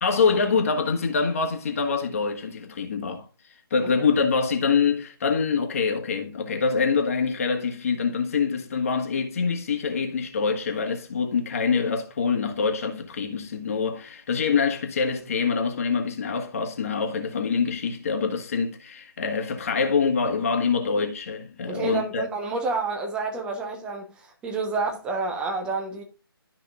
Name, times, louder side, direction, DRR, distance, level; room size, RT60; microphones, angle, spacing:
voice 1, 0.0-3.3 3.7-22.2, left 5 dB, 35° left, 1.6 m, -25 dB
voice 2, 21.7-26.0, right 4 dB, 5° right, 1.0 m, -29 dB
13.0 x 5.3 x 2.5 m
figure-of-eight pair, 150°, 13 cm